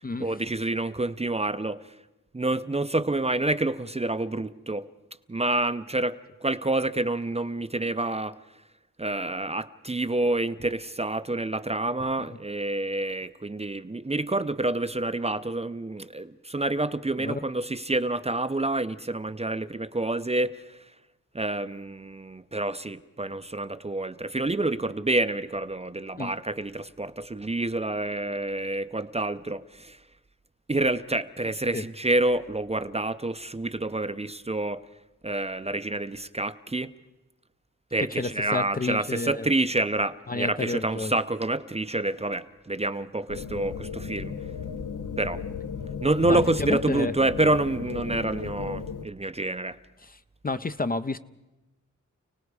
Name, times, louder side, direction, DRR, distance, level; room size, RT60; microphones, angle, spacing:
voice 1, 0.2-1.9 2.3-4.9 5.3-8.4 9.0-20.8 21.3-30.0 30.7-34.8 35.2-36.9 37.9-44.3 45.2-45.4 46.0-49.8, right 2 dB, 20° right, 11 dB, 0.6 m, -28 dB
voice 2, 38.2-39.5 40.3-41.1 46.3-47.1 50.0-50.2 50.4-51.2, left 3 dB, 30° left, 11 dB, 0.6 m, -30 dB
sound 1, 43.3-49.1, left 6 dB, 75° left, 1.0 m, -35 dB
29.5 x 18.5 x 4.8 m, 1.0 s
wide cardioid pair, 105°, 31 cm